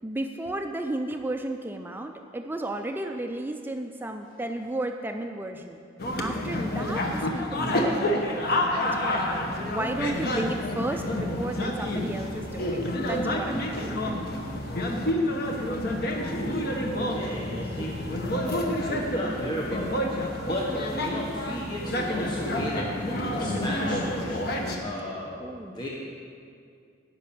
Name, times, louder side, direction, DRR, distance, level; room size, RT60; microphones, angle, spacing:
voice 1, 0.0-5.8 6.2-14.4 17.5-17.8 25.4-25.8, right 1 dB, 10° right, 5 dB, 0.4 m, -34 dB
sound 1, 6.0-24.8, left 1 dB, 55° left, 1.2 m, -29 dB
voice 2, 16.0-17.9 18.2-25.3 25.6-25.9, equal, 25° left, -4 dB, 1.1 m, -34 dB
11.5 x 5.8 x 8.6 m, 2.3 s
head